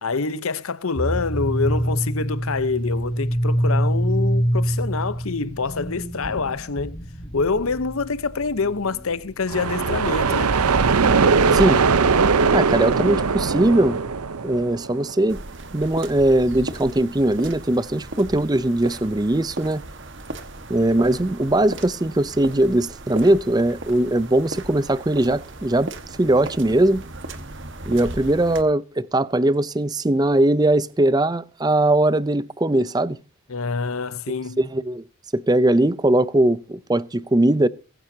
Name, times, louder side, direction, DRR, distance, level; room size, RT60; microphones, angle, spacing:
voice 1, 0.0-7.0 7.3-10.6 33.5-34.6, left 4 dB, 70° left, 0.8 m, -26 dB
sound 1, 1.0-12.2, equal, 25° left, 4.9 m, -26 dB
sound 2, 9.5-15.2, right 5 dB, 90° right, 0.8 m, -20 dB
voice 2, 11.5-11.8 12.5-14.0 14.4-15.4 15.7-19.8 20.7-25.9 26.2-27.0 27.9-33.2 34.6-35.0 35.3-37.7, right 1 dB, 20° right, 0.5 m, -20 dB
sound 3, 15.3-28.6, right 2 dB, 55° right, 1.5 m, -37 dB
22.0 x 10.0 x 2.8 m
head